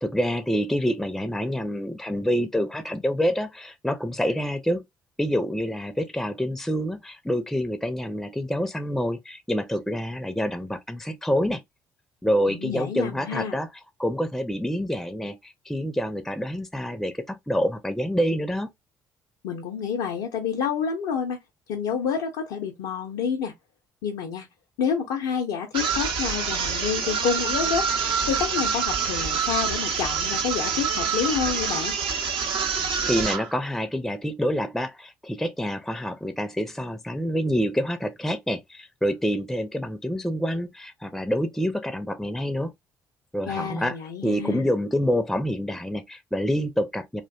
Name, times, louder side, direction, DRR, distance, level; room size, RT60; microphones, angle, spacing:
voice 1, 0.0-4.8 5.2-11.6 12.2-13.7 14.0-18.7 33.0-42.7 43.3-43.9 44.2-47.2, equal, 5° left, 0.4 m, -27 dB
voice 2, 12.5-13.6 19.4-21.4 21.7-23.5 24.0-24.5 24.8-27.9 28.2-31.9 43.5-44.7, left 7 dB, 75° left, 0.4 m, -28 dB
sound 1, 25.7-33.5, right 6 dB, 60° right, 0.6 m, -26 dB
2.5 x 2.1 x 2.3 m
hypercardioid pair, 50°, 10 cm